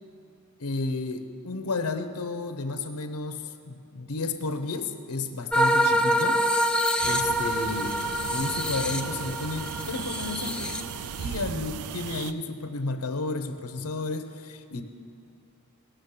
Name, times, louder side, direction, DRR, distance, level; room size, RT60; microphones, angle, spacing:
voice 1, 0.6-6.4 7.0-8.0 8.3-10.8 11.2-14.8, left 3 dB, 75° left, 9 dB, 0.8 m, -32 dB
sound 1, 5.5-11.2, equal, 5° left, 0.4 m, -26 dB
sound 2, 7.0-12.3, right 7 dB, 80° right, 0.4 m, -36 dB
18.0 x 6.3 x 6.7 m, 2.4 s
head